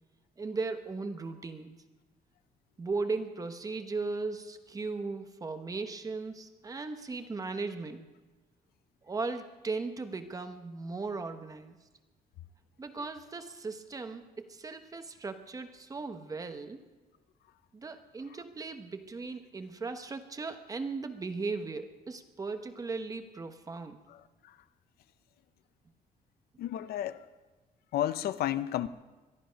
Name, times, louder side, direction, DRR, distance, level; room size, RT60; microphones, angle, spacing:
voice 1, 0.4-1.8 2.8-8.1 9.0-11.7 12.8-16.8 17.7-24.0, right 3 dB, 20° right, 8 dB, 1.0 m, -37 dB
voice 2, 26.6-27.2 27.9-28.9, left 12 dB, 85° left, 14 dB, 0.6 m, -31 dB
22.0 x 13.0 x 5.1 m, 1.2 s
cardioid pair, 145°, 16 cm